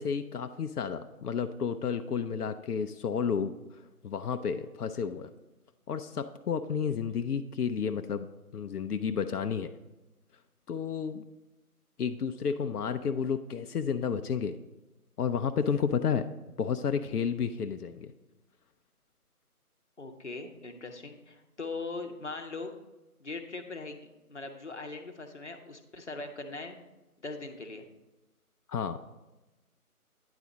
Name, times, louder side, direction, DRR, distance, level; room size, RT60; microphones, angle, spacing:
voice 1, 0.0-3.5 4.0-5.3 5.9-8.3 8.5-9.7 10.7-11.3 12.0-14.6 15.2-16.3 16.6-18.1 28.7-29.0, left 6 dB, 85° left, 9 dB, 0.5 m, -31 dB
voice 2, 20.0-22.7 23.2-26.8 27.2-27.8, left 3 dB, 50° left, 4 dB, 0.8 m, -40 dB
9.7 x 4.1 x 4.8 m, 1.0 s
figure-of-eight pair, 180°, 45 cm